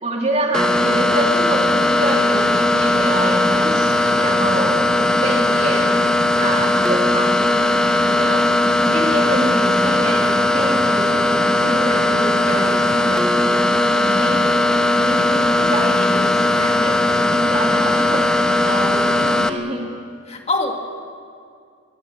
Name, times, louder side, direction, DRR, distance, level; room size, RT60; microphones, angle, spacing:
voice 1, 0.0-4.9 5.2-6.0 6.4-7.5 7.9-8.5 8.8-13.3 14.2-14.4 15.1-19.9, right 2 dB, 35° right, 0 dB, 2.8 m, -27 dB
sound 1, 0.5-19.5, left 1 dB, 5° left, 1.1 m, -18 dB
voice 2, 13.9-14.3 20.3-20.7, left 2 dB, 35° left, 2 dB, 2.1 m, -24 dB
24.5 x 23.0 x 7.0 m, 2.2 s
head